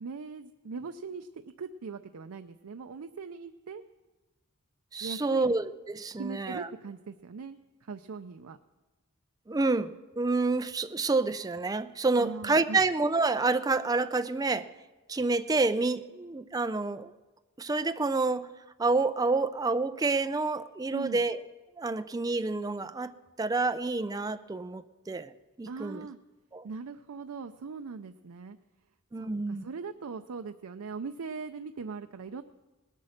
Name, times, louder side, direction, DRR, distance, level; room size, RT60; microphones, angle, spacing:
voice 1, 0.0-3.8 5.0-5.5 6.1-8.6 12.2-12.8 20.9-21.2 25.7-26.2 26.6-28.6 29.2-32.4, right 4 dB, 75° right, 8 dB, 0.5 m, -40 dB
voice 2, 4.9-6.7 9.5-14.7 15.1-17.1 17.6-18.5 18.8-21.4 21.8-23.1 23.4-25.3 25.6-26.0 26.5-26.7 29.1-29.6, right 3 dB, 15° right, 11 dB, 0.4 m, -28 dB
19.0 x 8.4 x 6.5 m, 1.2 s
head